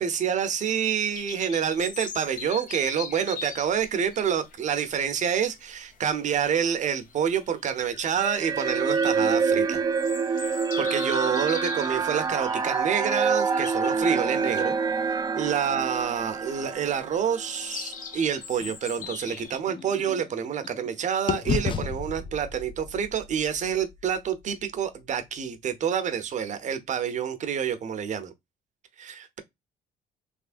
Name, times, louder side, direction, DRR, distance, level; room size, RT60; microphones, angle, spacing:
voice 1, 0.0-9.8 10.4-14.8 15.3-28.3 29.0-29.4, right 8 dB, 45° right, 0.8 m, -28 dB
sound 1, 1.1-19.6, left 6 dB, 50° left, 0.9 m, -41 dB
sound 2, 8.2-17.7, right 5 dB, 20° right, 0.4 m, -27 dB
sound 3, 18.6-20.9 21.3-25.3, left 6 dB, 30° left, 0.5 m, -34 dB
3.4 x 3.1 x 2.4 m
cardioid pair, 110°, 17 cm